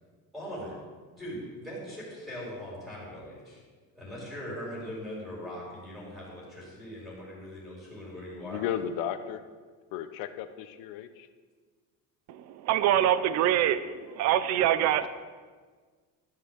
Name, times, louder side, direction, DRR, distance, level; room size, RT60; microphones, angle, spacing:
voice 1, 0.3-0.7 1.2-3.6 3.9-8.6, equal, ahead, 4.3 m, -40 dB
voice 2, 8.4-9.4 9.9-11.3 14.8-15.1, left 9 dB, 75° left, 0.9 m, -34 dB
voice 3, 12.3-15.1, right 11 dB, 50° right, 0.7 m, -25 dB
13.5 x 5.8 x 8.2 m
cardioid pair, 180°, 35 cm